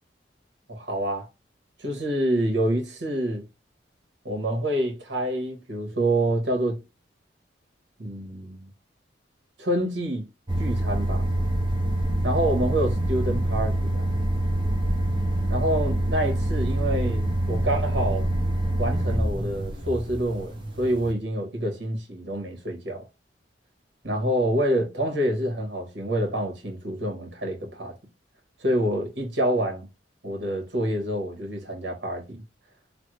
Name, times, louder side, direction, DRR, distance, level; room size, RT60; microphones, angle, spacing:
voice 1, 0.7-1.3 1.8-3.4 4.2-6.8 8.0-8.7 9.6-10.3 10.6-11.2 12.2-14.1 15.5-18.3 18.8-23.0 24.0-27.9 28.6-29.9 30.2-32.4, right 1 dB, 75° right, 1.2 m, -27 dB
sound 1, 10.5-21.1, right 1 dB, 25° right, 0.8 m, -26 dB
3.3 x 2.1 x 3.0 m
head